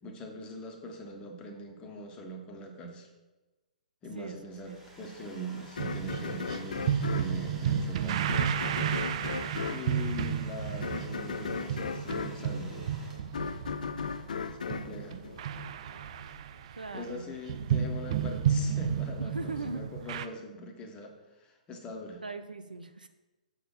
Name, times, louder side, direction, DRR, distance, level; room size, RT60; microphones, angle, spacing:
voice 1, 0.0-3.1 4.0-8.5 9.6-12.9 14.6-15.2 16.9-21.1 21.4-22.2, equal, 20° left, 2 dB, 1.4 m, -42 dB
voice 2, 4.1-4.8 16.7-17.3 19.2-19.9 22.2-23.1, right 3 dB, 85° right, 9 dB, 0.7 m, -40 dB
Domestic sounds home sounds, 4.3-13.5, right 1 dB, 10° right, 2.2 m, -53 dB
sound 1, 5.8-16.0, left 5 dB, 65° left, 0.6 m, -37 dB
sound 2, 5.8-17.1 17.5-20.3, right 8 dB, 50° right, 0.4 m, -32 dB
7.0 x 6.0 x 5.3 m, 1.1 s
figure-of-eight pair, 120°, 4 cm